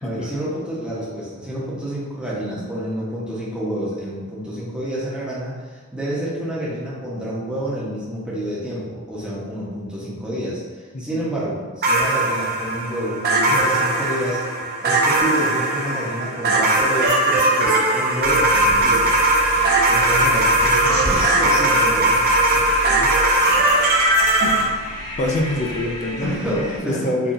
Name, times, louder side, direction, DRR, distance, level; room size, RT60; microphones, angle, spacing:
voice 1, 0.0-14.4 14.8-19.1 19.9-22.2 26.2-27.1, equal, 5° right, -8 dB, 0.8 m, -28 dB
voice 2, 10.9-11.3 22.9-23.1 24.4-24.7 25.2-26.3 26.9-27.3, left 1 dB, 30° left, 1 dB, 0.4 m, -25 dB
sound 1, 11.8-24.6, right 2 dB, 45° right, 0.5 m, -18 dB
sound 2, 18.2-26.8, equal, 80° left, 1.1 m, -32 dB
3.8 x 2.4 x 2.6 m, 1.5 s
head